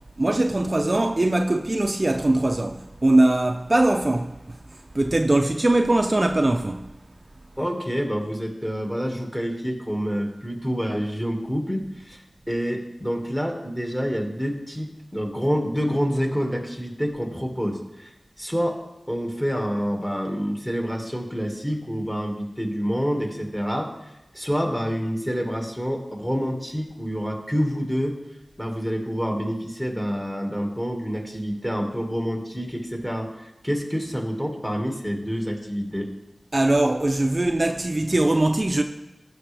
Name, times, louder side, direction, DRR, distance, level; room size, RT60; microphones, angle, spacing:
voice 1, 0.2-4.6 4.9-6.9 36.5-38.8, right 2 dB, 40° right, 0.5 m, -21 dB
voice 2, 7.6-12.2 12.5-18.8 19.1-28.2 28.6-36.1, equal, 10° left, 1.8 m, -27 dB
15.5 x 5.8 x 3.4 m
wide cardioid pair, 50°, 0 cm